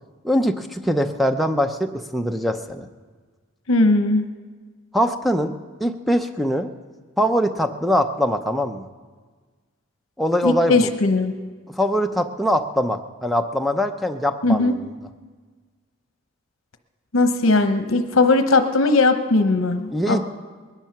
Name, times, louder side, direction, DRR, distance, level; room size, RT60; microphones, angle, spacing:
voice 1, 0.2-2.9 4.9-6.7 7.2-8.9 10.2-10.9 11.8-14.9 19.9-20.2, equal, ahead, 4 dB, 0.6 m, -22 dB
voice 2, 3.7-4.3 10.4-11.3 14.4-14.7 17.1-20.2, left 3 dB, 75° left, 7 dB, 0.8 m, -18 dB
21.0 x 10.5 x 5.9 m, 1.5 s
head